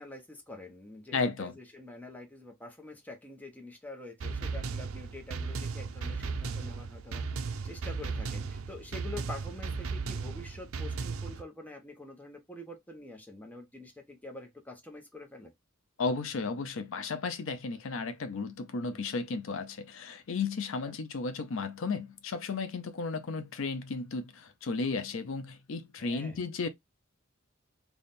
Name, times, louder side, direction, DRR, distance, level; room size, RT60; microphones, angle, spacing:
voice 1, 0.0-15.5 18.8-19.0 20.8-21.0 26.0-26.4, left 2 dB, 5° left, 0.8 m, -46 dB
voice 2, 1.1-1.5 16.0-26.7, left 4 dB, 65° left, 0.5 m, -34 dB
sound 1, 4.2-11.4, right 4 dB, 70° right, 0.5 m, -36 dB
3.4 x 2.3 x 4.1 m
head